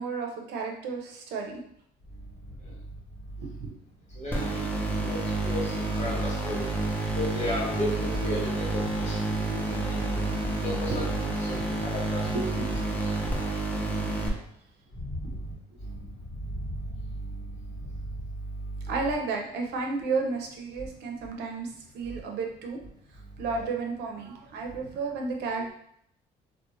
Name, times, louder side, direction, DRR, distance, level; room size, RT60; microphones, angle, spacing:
voice 1, 0.0-1.6 3.4-3.7 10.9-11.0 11.5-11.8 12.3-13.0 15.2-15.4 18.8-22.8 23.1-25.7, right 4 dB, 85° right, 1 dB, 0.6 m, -33 dB
voice 2, 4.2-4.7 4.9-6.7 7.1-10.0 10.6-11.1 11.4-12.3 13.0-13.1 14.9-15.4 15.8-16.0 16.4-16.5 17.2-17.5, left 1 dB, 40° left, -4 dB, 1.2 m, -34 dB
sound 1, 4.3-14.3, right 2 dB, 10° left, 0.6 m, -29 dB
2.5 x 2.1 x 3.0 m, 0.70 s
cardioid pair, 110°, 17 cm